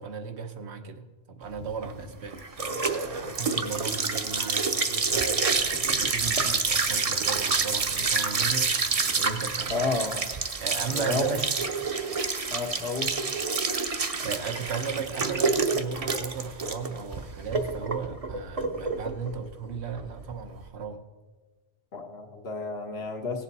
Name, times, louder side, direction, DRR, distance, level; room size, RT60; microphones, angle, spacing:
voice 1, 0.0-8.9 9.2-9.8 10.6-11.5 14.2-21.1, right 5 dB, 85° right, 7 dB, 1.1 m, -36 dB
sound 1, 1.6-20.6, right 4 dB, 40° right, 0.7 m, -28 dB
voice 2, 9.7-10.3 10.9-11.3 12.5-13.1 21.9-23.4, left 3 dB, 75° left, 3 dB, 1.4 m, -31 dB
17.5 x 7.3 x 4.1 m, 1.3 s
omnidirectional pair, 1.1 m